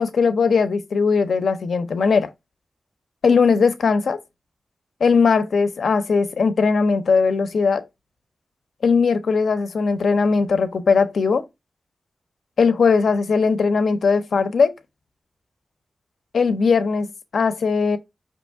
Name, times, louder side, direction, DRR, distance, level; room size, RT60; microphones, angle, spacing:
voice 1, 0.0-2.3 3.2-4.2 5.0-7.8 8.8-11.4 12.6-14.7 16.3-18.0, left 5 dB, 80° left, 0.5 m, -19 dB
5.3 x 2.9 x 3.4 m
wide cardioid pair, 160°, 0 cm